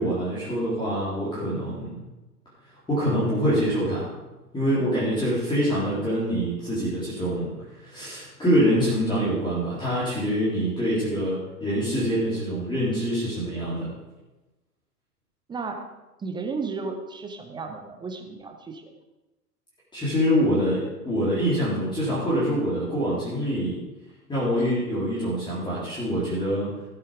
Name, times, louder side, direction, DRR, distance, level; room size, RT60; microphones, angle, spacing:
voice 1, 0.0-2.0 2.9-4.1 4.5-13.9 19.9-23.8 24.3-26.7, equal, 10° left, -9 dB, 3.9 m, -25 dB
voice 2, 15.5-15.9 16.2-18.9, right 4 dB, 10° right, 4 dB, 0.9 m, -33 dB
16.0 x 8.9 x 5.2 m, 1.1 s
figure-of-eight pair, 105°, 47 cm